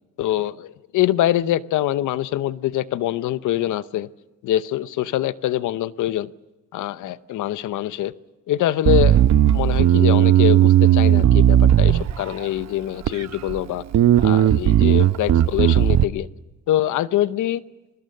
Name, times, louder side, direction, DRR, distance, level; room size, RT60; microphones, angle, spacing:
voice 1, 0.2-4.1 4.4-6.3 6.7-8.1 8.5-13.8 14.2-16.3 16.7-17.6, left 13 dB, 80° left, 16 dB, 0.8 m, -24 dB
Bass guitar, 8.8-12.4 13.0-13.6 13.9-16.0, right 11 dB, 60° right, 0.9 m, -16 dB
26.5 x 22.5 x 6.6 m, 1.1 s
cardioid pair, 90°, 30 cm